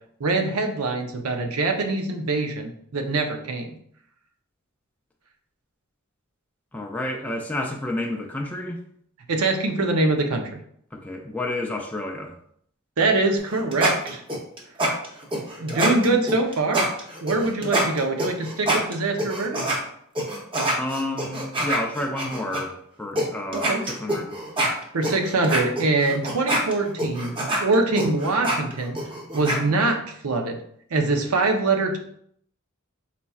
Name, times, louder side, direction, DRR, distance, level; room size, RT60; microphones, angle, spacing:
voice 1, 0.2-3.8 9.3-10.6 13.0-14.2 15.6-16.8 17.2-19.6 23.5-23.8 24.9-29.0 29.3-30.6 30.9-32.0, right 3 dB, 85° right, 4 dB, 0.7 m, -23 dB
voice 2, 6.7-8.8 10.9-12.4 17.4-17.9 20.8-24.3, left 1 dB, 5° left, 1 dB, 0.3 m, -30 dB
sound 1, 13.4-19.8 20.2-22.6 23.2-23.3 23.5-29.6, right 1 dB, 25° right, 0.8 m, -26 dB
4.2 x 4.1 x 2.3 m, 0.66 s
head